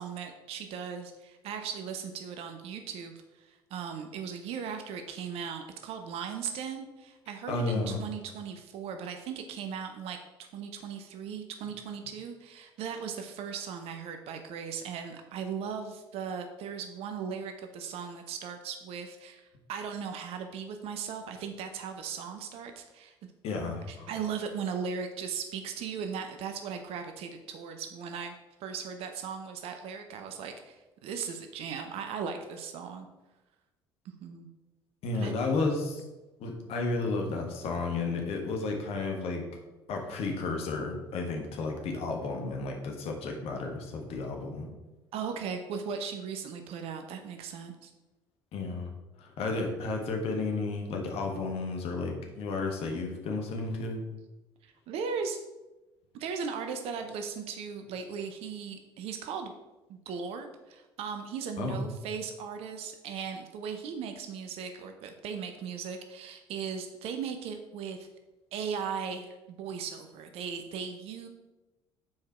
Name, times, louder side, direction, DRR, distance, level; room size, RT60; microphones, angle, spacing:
voice 1, 0.0-19.4 19.7-23.1 23.9-28.3 28.6-33.1 34.0-34.5 35.1-35.3 45.1-47.9 54.6-55.4 56.1-59.5 59.9-68.1 68.5-71.3, right 6 dB, 50° right, 6 dB, 0.7 m, -38 dB
voice 2, 7.5-8.1 23.4-24.1 35.0-36.0 36.4-39.4 39.9-44.7 48.5-48.9 49.2-54.0 61.6-61.8, left 3 dB, 50° left, 2 dB, 1.4 m, -32 dB
7.6 x 4.7 x 4.3 m, 1.1 s
figure-of-eight pair, 55°, 13 cm